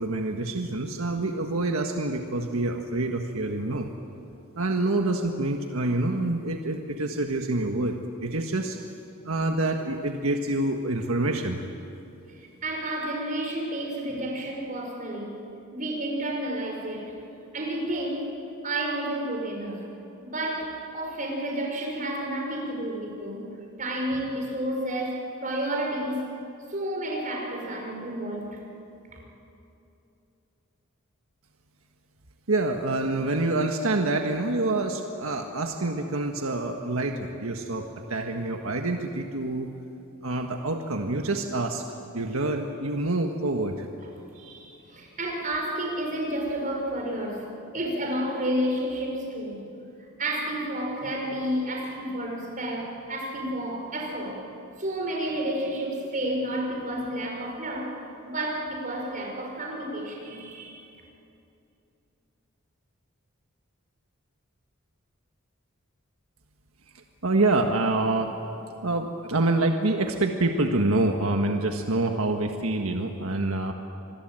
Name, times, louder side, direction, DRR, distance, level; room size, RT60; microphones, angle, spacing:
voice 1, 0.0-3.9 4.5-8.8 9.2-11.6 32.5-39.7 40.2-41.8 42.1-43.9 66.9-68.3 68.8-73.7, right 2 dB, 90° right, 4 dB, 1.6 m, -26 dB
voice 2, 12.6-15.4 15.7-17.2 17.5-18.3 18.6-19.8 20.2-23.5 23.8-26.3 26.7-28.6 44.3-47.5 47.7-49.7 50.2-54.4 54.8-60.8, right 1 dB, 40° right, 1 dB, 5.4 m, -31 dB
27.0 x 21.0 x 9.0 m, 2.8 s
head